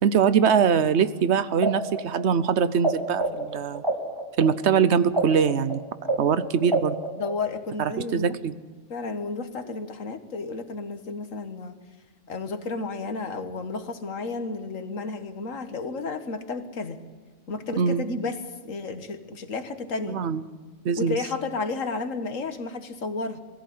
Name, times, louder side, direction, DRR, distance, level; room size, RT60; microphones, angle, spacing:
voice 1, 0.0-3.8 4.4-5.8 6.2-7.0 7.8-8.5 17.7-18.0 20.1-20.4 20.8-21.2, right 7 dB, 65° right, 14 dB, 1.0 m, -22 dB
sound 1, 1.6-2.9 3.2-7.6, right 2 dB, 20° right, 2.8 m, -27 dB
voice 2, 7.2-8.4 8.9-11.8 12.3-17.0 17.5-20.2 21.0-23.4, left 3 dB, 85° left, 8 dB, 1.8 m, -32 dB
21.5 x 14.5 x 9.4 m, 1.4 s
omnidirectional pair, 1.3 m